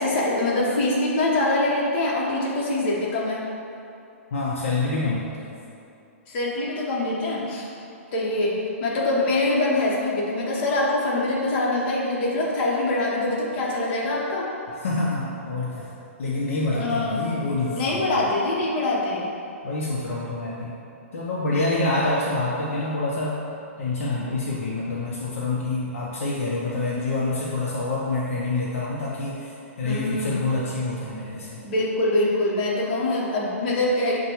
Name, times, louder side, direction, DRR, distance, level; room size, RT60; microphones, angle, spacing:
voice 1, 0.0-3.4 6.3-7.7 8.1-14.5 16.8-17.3 17.7-19.3 29.8-30.4 31.6-34.2, left 2 dB, 45° left, -4 dB, 1.0 m, -24 dB
voice 2, 4.3-5.5 14.7-15.9 16.2-18.1 19.6-20.8 21.1-23.4 23.8-31.6, left 2 dB, 65° left, -6 dB, 0.7 m, -27 dB
6.6 x 2.2 x 3.0 m, 2.7 s
hypercardioid pair, 140°, 8 cm